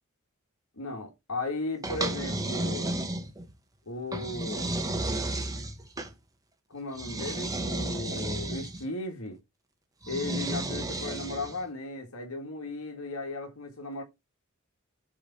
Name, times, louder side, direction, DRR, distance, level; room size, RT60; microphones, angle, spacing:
voice 1, 0.7-2.9 3.9-4.7 6.7-9.4 10.1-14.0, left 2 dB, 80° left, 2.0 m, -36 dB
sound 1, 1.8-3.5 4.1-6.1 6.9-8.8 10.0-11.6, right 1 dB, 15° right, 1.1 m, -32 dB
8.4 x 3.5 x 4.2 m
head